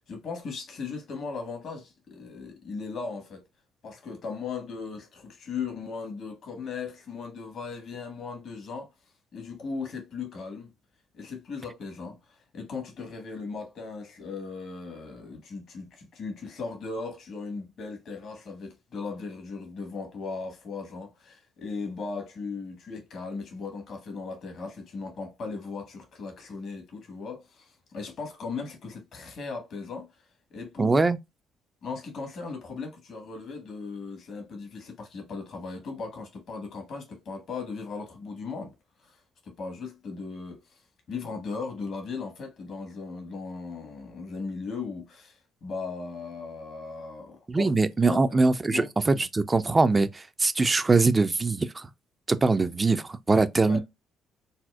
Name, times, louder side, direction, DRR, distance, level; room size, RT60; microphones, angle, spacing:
voice 1, 0.1-3.4 3.8-8.9 9.3-10.7 11.1-30.1 30.5-31.0 31.8-38.7 39.0-40.8 41.1-47.7 48.1-48.4 48.7-48.9 53.7-53.8, left 4 dB, 60° left, 1.2 m, -37 dB
voice 2, 30.8-31.2 47.5-51.9 52.3-53.8, right 3 dB, 25° right, 0.4 m, -23 dB
4.1 x 2.0 x 2.3 m
hypercardioid pair, 50°, 0 cm